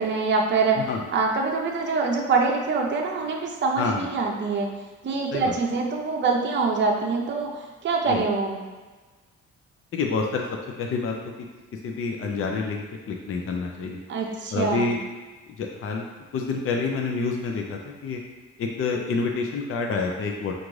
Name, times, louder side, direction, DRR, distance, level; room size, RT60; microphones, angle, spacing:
voice 1, 0.0-0.8 1.1-4.7 5.0-8.7 14.1-14.9, right 4 dB, 40° right, 0 dB, 0.6 m, -24 dB
voice 2, 3.8-4.1 5.3-5.5 8.1-8.2 9.9-10.4 10.8-11.1 11.8-14.0 14.5-15.0 15.6-16.1 16.3-18.2 18.6-20.5, left 4 dB, 45° left, 1 dB, 0.5 m, -27 dB
4.9 x 2.5 x 3.1 m, 1.3 s
cardioid pair, 90°, 30 cm